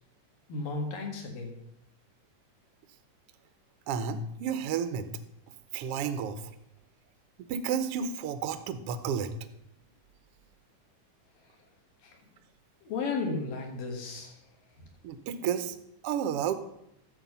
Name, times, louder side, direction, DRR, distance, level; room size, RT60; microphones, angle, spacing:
voice 1, 0.5-1.5 12.0-12.2 12.8-14.4, left 4 dB, 90° left, 2 dB, 3.5 m, -34 dB
voice 2, 3.9-5.0 5.7-6.4 7.5-9.3 15.0-15.7 16.0-16.5, right 7 dB, 85° right, 9 dB, 1.3 m, -31 dB
11.5 x 7.1 x 5.5 m, 0.78 s
omnidirectional pair, 3.8 m